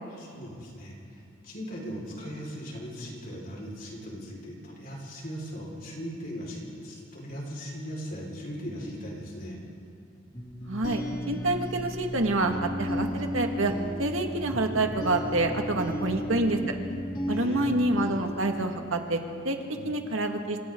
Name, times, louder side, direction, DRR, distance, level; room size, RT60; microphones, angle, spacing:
voice 1, 0.1-9.6 15.8-16.1 17.3-17.7 19.7-19.9, equal, 45° left, -2 dB, 5.1 m, -39 dB
sound 1, 10.3-19.1, left 1 dB, 25° left, 2.2 m, -34 dB
voice 2, 10.7-13.7 14.0-16.7 17.3-19.6 19.8-20.7, right 2 dB, 85° right, 4 dB, 2.0 m, -27 dB
28.0 x 26.0 x 3.9 m, 2.6 s
head